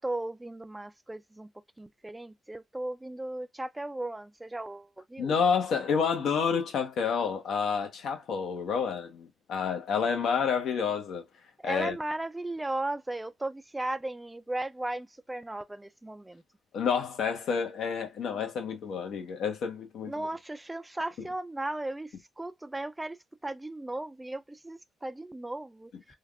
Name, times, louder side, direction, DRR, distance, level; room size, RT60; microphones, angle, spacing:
voice 1, 0.0-1.5 1.8-5.3 11.6-16.4 20.0-23.2 23.4-25.9, right 2 dB, 10° right, 0.3 m, -36 dB
voice 2, 5.2-11.2 11.6-12.0 16.7-20.1, left 6 dB, 70° left, 0.9 m, -29 dB
3.3 x 2.3 x 2.3 m
cardioid pair, 90°, 0 cm